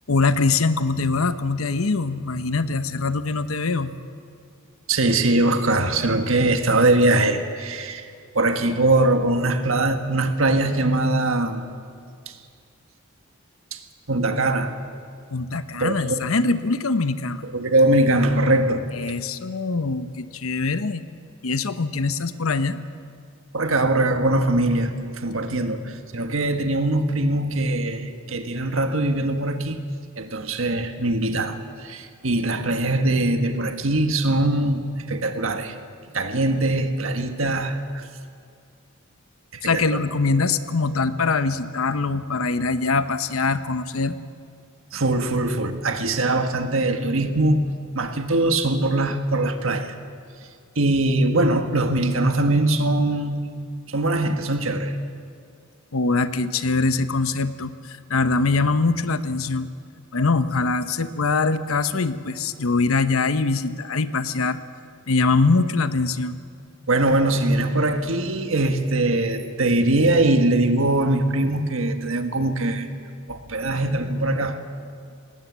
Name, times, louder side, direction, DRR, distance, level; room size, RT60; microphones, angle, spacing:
voice 1, 0.1-3.9 15.3-17.4 18.9-21.1 21.4-22.8 39.6-44.2 55.9-59.7 60.1-64.6 65.1-66.4, left 3 dB, 90° left, 12 dB, 0.9 m, -23 dB
voice 2, 4.9-8.1 8.3-11.6 12.3-12.4 13.7-13.8 14.1-14.7 15.8-16.2 17.4-18.9 23.5-29.8 30.2-35.8 36.1-38.0 39.5-40.0 44.9-47.7 47.9-49.9 50.7-53.4 53.9-54.9 66.9-72.9 73.3-74.6, right 2 dB, 75° right, 7 dB, 1.6 m, -22 dB
19.5 x 19.0 x 8.2 m, 2.3 s
head